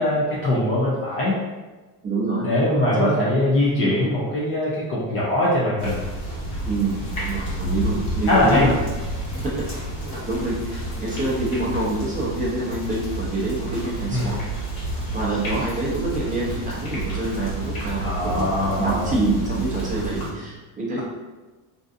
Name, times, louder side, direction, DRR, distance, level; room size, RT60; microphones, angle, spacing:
voice 1, 0.0-1.4 2.4-6.0 8.3-8.7 14.1-14.3 18.0-19.1 20.9-21.0, left 1 dB, 30° left, -7 dB, 0.3 m, -21 dB
voice 2, 2.0-2.4 2.9-3.3 6.6-8.7 9.3-9.7 10.0-14.6 15.1-21.0, right 2 dB, 15° right, -6 dB, 0.5 m, -26 dB
sound 1, 5.8-20.3, right 1 dB, 50° left, 1.2 m, -30 dB
3.7 x 2.6 x 2.4 m, 1.2 s
cardioid pair, 165°, 47 cm